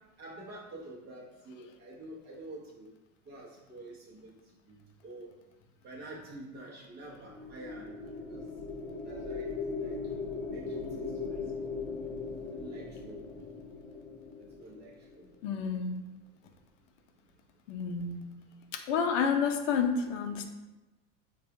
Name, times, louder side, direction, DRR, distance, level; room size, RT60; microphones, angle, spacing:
voice 1, 0.2-2.9 3.3-4.3 4.7-4.8 5.0-5.3 5.8-7.9 8.3-8.4 9.0-9.5 9.8-10.2 10.5-11.7 12.5-13.3 14.4-15.3, right 1 dB, 25° right, -4 dB, 0.8 m, -48 dB
sound 1, 7.0-15.5, left 4 dB, 10° left, 0.3 m, -39 dB
voice 2, 15.4-16.0 17.7-18.2 18.7-20.5, left 6 dB, 65° left, 5 dB, 0.6 m, -29 dB
4.8 x 2.3 x 2.6 m, 1.0 s
supercardioid pair, 160°, 40 cm